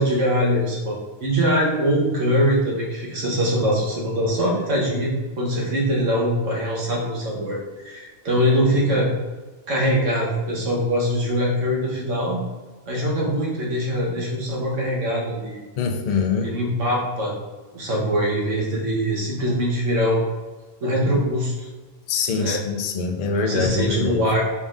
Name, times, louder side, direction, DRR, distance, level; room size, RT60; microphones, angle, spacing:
voice 1, 0.0-7.6 7.8-9.1 9.7-12.4 12.8-15.6 16.4-17.3 17.7-20.3 20.8-21.7 22.4-22.6 23.3-24.4, equal, 90° right, -4 dB, 1.4 m, -22 dB
voice 2, 15.8-16.5 22.1-24.2, left 5 dB, 85° left, 4 dB, 0.3 m, -24 dB
5.2 x 3.5 x 2.5 m, 1.3 s
omnidirectional pair, 1.3 m